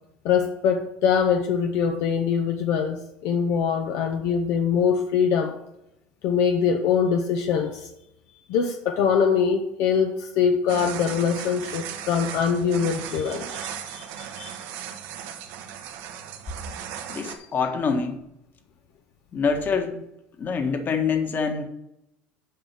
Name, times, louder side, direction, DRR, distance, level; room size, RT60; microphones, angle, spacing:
voice 1, 0.2-5.6 6.2-7.9 8.5-14.6, left 6 dB, 65° left, 4 dB, 0.8 m, -23 dB
sound 1, 10.7-17.3, right 9 dB, 70° right, 1.2 m, -37 dB
voice 2, 17.1-18.2 19.3-20.0 20.4-21.6, left 5 dB, 40° left, 5 dB, 1.6 m, -25 dB
7.7 x 5.6 x 5.8 m, 0.85 s
supercardioid pair, 90°, 5 cm